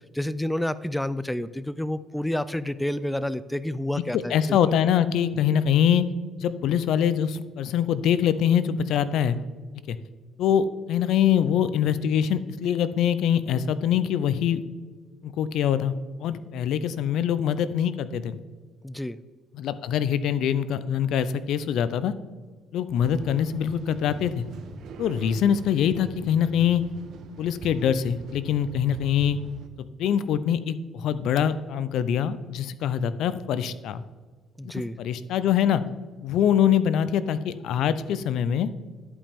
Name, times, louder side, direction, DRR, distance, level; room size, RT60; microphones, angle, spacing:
voice 1, 0.0-4.6 18.8-19.2 34.6-35.0, left 1 dB, 5° left, 15 dB, 0.3 m, -29 dB
voice 2, 4.1-6.1 6.4-9.4 9.9-10.0 10.4-14.6 15.2-18.4 19.5-22.1 22.7-24.5 25.0-26.8 27.4-29.4 30.0-34.0 34.6-35.8 36.2-38.7, left 9 dB, 75° left, 15 dB, 0.4 m, -24 dB
sound 1, 22.9-29.7, right 5 dB, 65° right, 0.7 m, -42 dB
11.0 x 5.2 x 3.5 m, 1.5 s
cardioid pair, 95°, 0 cm